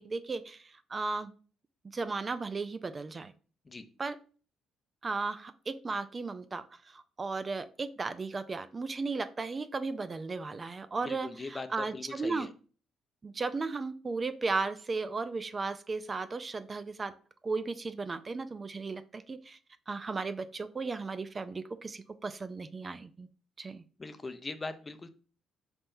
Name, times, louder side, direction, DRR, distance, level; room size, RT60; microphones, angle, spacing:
voice 1, 0.0-1.3 1.9-3.3 4.0-4.2 5.0-12.5 13.2-17.1 17.4-19.6 19.9-23.3 23.6-23.8, right 4 dB, 35° right, 11 dB, 0.3 m, -35 dB
voice 2, 11.0-12.5 24.0-25.1, left 3 dB, 30° left, 10 dB, 0.5 m, -40 dB
4.3 x 3.5 x 2.6 m, 0.39 s
supercardioid pair, 60°, 0 cm